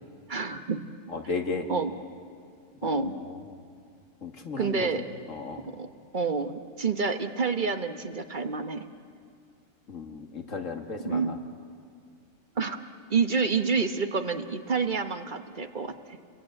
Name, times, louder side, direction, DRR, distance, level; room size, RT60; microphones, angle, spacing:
voice 1, 0.3-0.9 1.7-1.9 2.8-3.2 4.6-5.0 5.6-8.8 11.0-11.4 12.6-12.8 13.1-16.2, right 5 dB, 40° right, 8 dB, 1.1 m, -28 dB
voice 2, 1.1-1.7 2.8-3.6 4.2-5.6 9.9-11.4, left 4 dB, 85° left, 4 dB, 2.3 m, -35 dB
29.5 x 21.5 x 8.8 m, 2.3 s
omnidirectional pair, 1.3 m